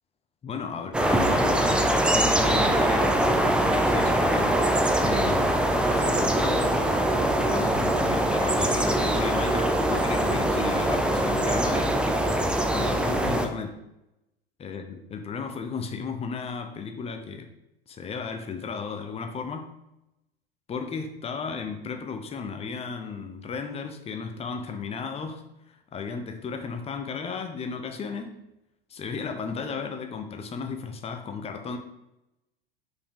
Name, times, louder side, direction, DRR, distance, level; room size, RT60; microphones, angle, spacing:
voice 1, 0.4-4.7 5.0-7.0 7.3-11.9 12.7-13.8 14.6-17.5 17.9-19.7 20.7-25.4 25.9-28.3 28.9-31.8, left 5 dB, 20° left, 5 dB, 0.8 m, -34 dB
sound 1, 0.9-13.5, right 1 dB, 5° right, 0.5 m, -23 dB
5.1 x 4.9 x 5.3 m, 0.89 s
figure-of-eight pair, 80°, 31 cm